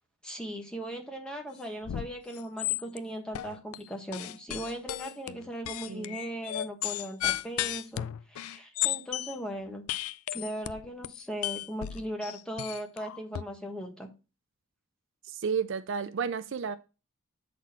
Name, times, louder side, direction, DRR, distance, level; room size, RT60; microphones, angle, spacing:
voice 1, 0.2-9.8 10.3-14.1, equal, 5° left, 1.4 m, -38 dB
sound 1, 1.8-2.1 2.3-3.0 3.3-3.8 4.1-9.4 9.9-13.4, left 13 dB, 80° left, 0.3 m, -34 dB
voice 2, 5.9-6.2 15.3-16.8, right 6 dB, 60° right, 0.4 m, -32 dB
8.3 x 4.2 x 4.4 m
head